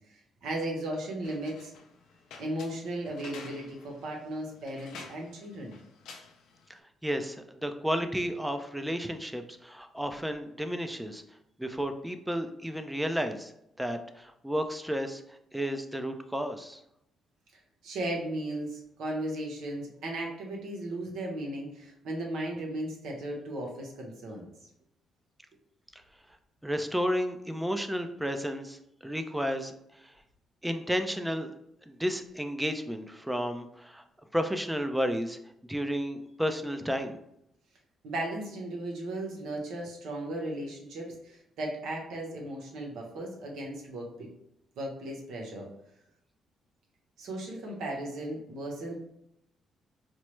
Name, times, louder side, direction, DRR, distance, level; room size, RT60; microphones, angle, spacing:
voice 1, 0.4-1.7 2.4-5.8 17.8-24.5 38.0-44.3 44.8-45.7 47.2-49.0, right 1 dB, 80° right, 0 dB, 0.9 m, -36 dB
sound 1, 1.2-6.8, left 5 dB, 85° left, 0.5 m, -51 dB
voice 2, 7.0-11.2 11.6-13.5 13.8-15.2 15.5-16.8 26.6-29.7 30.6-31.5 31.9-34.0 34.3-35.4 35.7-37.2, equal, 5° right, 8 dB, 0.4 m, -32 dB
4.5 x 2.0 x 3.0 m, 0.79 s
cardioid pair, 90°, 0 cm